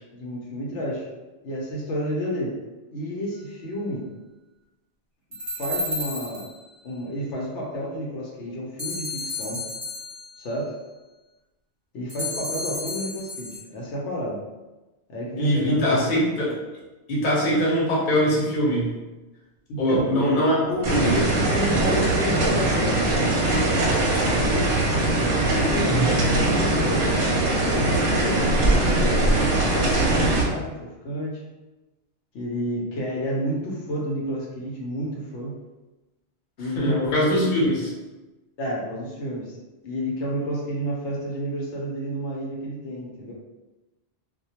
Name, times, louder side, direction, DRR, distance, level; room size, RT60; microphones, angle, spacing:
voice 1, 0.1-1.0 1.4-2.5 2.9-4.0 5.6-6.5 6.8-9.6 10.4-10.7 11.9-14.4 15.1-16.2 19.7-24.7 25.4-27.1 27.6-31.4 32.3-35.5 36.6-37.4 38.6-39.5 39.8-43.3, equal, 85° left, -4 dB, 0.9 m, -30 dB
sound 1, 5.3-6.7 8.8-10.5 12.1-13.6, left 2 dB, 20° right, 0.8 m, -32 dB
voice 2, 15.4-16.5 17.1-18.9 19.8-20.6 20.9-21.2 25.8-26.2 36.7-37.9, equal, 50° left, -6 dB, 0.9 m, -22 dB
sound 2, 20.8-30.4, right 2 dB, 60° right, 0.7 m, -21 dB
2.2 x 2.1 x 2.8 m, 1.1 s
omnidirectional pair, 1.2 m